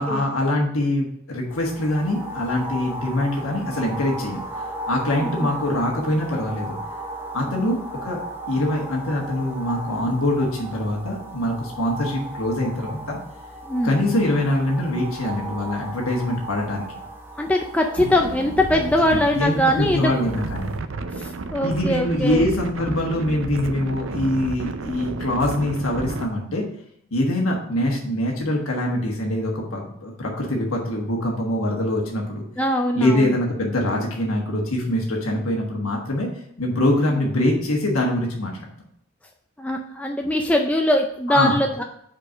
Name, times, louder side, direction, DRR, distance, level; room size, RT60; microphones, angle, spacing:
voice 1, 0.0-4.4 4.9-6.8 7.3-8.2 8.5-13.2 13.8-16.9 19.1-20.7 21.6-26.7 27.1-32.4 32.9-36.3 36.6-38.5 41.3-41.6, left 1 dB, 80° left, -1 dB, 1.4 m, -24 dB
sound 1, 1.5-20.8, right 1 dB, 10° right, 0.9 m, -36 dB
voice 2, 13.6-13.9 17.4-20.1 21.1-22.5 32.6-33.3 37.1-37.2 39.6-41.8, left 1 dB, 5° left, 2 dB, 0.3 m, -22 dB
sound 2, 18.0-26.3, right 3 dB, 65° right, 0.5 m, -32 dB
5.2 x 4.4 x 6.1 m, 0.72 s
head